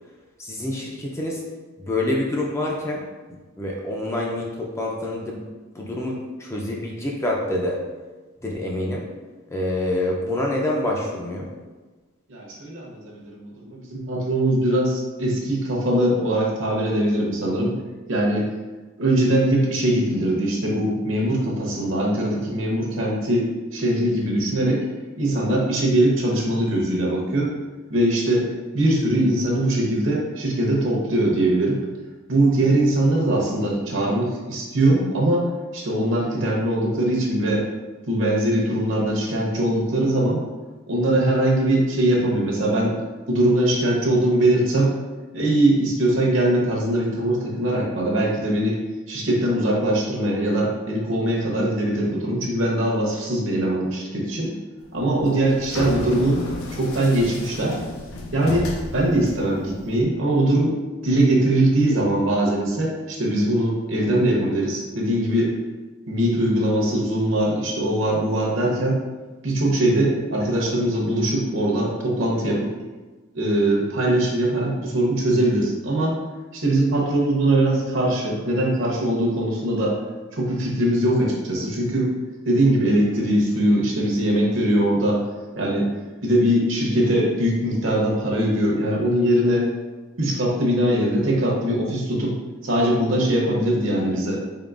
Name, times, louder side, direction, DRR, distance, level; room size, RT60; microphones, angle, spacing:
voice 1, 0.4-1.4 1.8-3.0 3.6-5.4 5.7-7.8 8.4-9.0 9.5-11.5, left 1 dB, 15° left, -2 dB, 0.4 m, -26 dB
voice 2, 12.3-17.8 18.1-18.5 19.0-24.8 25.2-27.5 27.9-28.5 28.7-31.8 32.3-37.6 38.1-40.4 40.9-42.9 43.3-45.0 45.3-48.8 49.1-54.5 54.9-56.4 56.7-57.8 58.3-60.7 61.0-65.6 66.1-69.0 69.4-72.7 73.3-76.2 76.5-80.0 80.3-82.1 82.5-85.2 85.6-85.9 86.2-89.7 90.2-92.3 92.6-94.4, right 1 dB, 60° right, -2 dB, 0.8 m, -21 dB
sound 1, 55.0-60.0, left 2 dB, 85° left, 0.5 m, -32 dB
3.7 x 3.5 x 2.4 m, 1.3 s
head